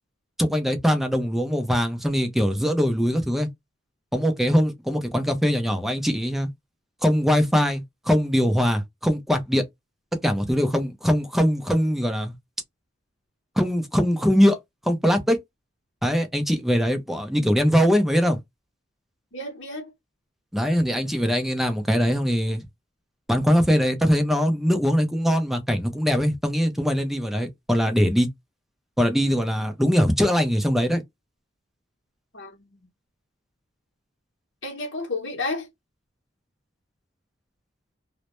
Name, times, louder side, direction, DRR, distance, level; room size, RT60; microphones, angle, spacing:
voice 1, 0.4-3.5 4.1-6.5 7.0-9.6 10.2-12.3 13.6-14.6 14.8-15.4 16.0-18.4 20.5-22.6 23.3-28.3 29.0-31.0, equal, ahead, 0.4 m, -22 dB
voice 2, 19.3-19.8 32.3-32.8 34.6-35.7, left 2 dB, 65° left, 0.8 m, -31 dB
2.1 x 2.0 x 2.8 m
head